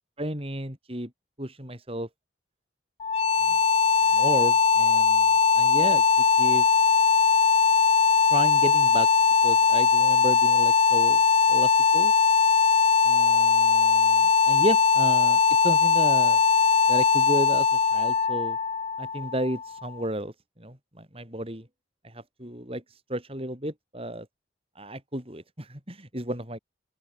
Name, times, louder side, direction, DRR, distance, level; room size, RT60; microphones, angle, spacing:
voice 1, 0.2-1.1 1.4-2.1 3.5-3.6 4.1-5.3 5.6-6.0 6.4-6.7 8.3-9.1 9.4-12.1 13.0-16.4 16.9-18.6 19.0-21.7 22.0-24.3 24.7-26.6, right 1 dB, 30° right, 6.7 m, -33 dB
sound 1, 3.0-19.9, left 5 dB, 30° left, 0.4 m, -20 dB
open air
head